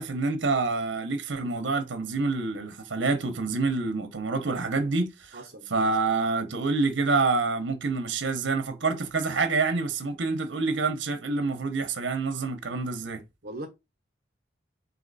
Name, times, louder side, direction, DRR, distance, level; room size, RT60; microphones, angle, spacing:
voice 1, 0.0-5.4 5.7-13.2, right 3 dB, 80° right, 0.8 m, -27 dB
voice 2, 5.3-5.9 13.4-13.7, right 1 dB, 55° right, 0.8 m, -40 dB
4.2 x 2.8 x 4.0 m
head